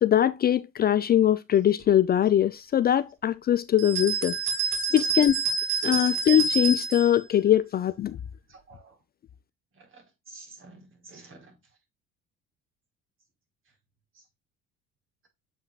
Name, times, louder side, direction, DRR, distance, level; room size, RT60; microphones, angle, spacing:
voice 1, 0.0-4.4 4.9-5.4 5.8-8.2, left 10 dB, 35° left, 0.4 m, -22 dB
sound 1, 3.8-7.1, right 5 dB, 60° right, 2.5 m, -28 dB
voice 2, 8.5-9.0 9.9-11.5, right 3 dB, 45° right, 4.2 m, -49 dB
7.7 x 5.5 x 2.4 m
hypercardioid pair, 70°, 29 cm